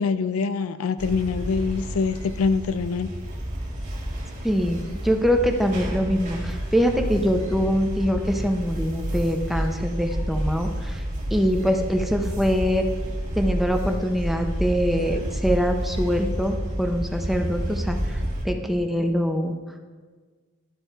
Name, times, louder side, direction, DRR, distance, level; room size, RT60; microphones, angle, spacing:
voice 1, 0.0-3.1, left 5 dB, 75° left, 12 dB, 0.4 m, -24 dB
sound 1, 1.0-18.4, right 1 dB, 35° right, 1.8 m, -30 dB
voice 2, 4.4-11.0 11.3-12.9 13.4-18.2 18.4-19.5, equal, ahead, 4 dB, 0.5 m, -24 dB
12.0 x 4.3 x 4.5 m, 1.5 s
head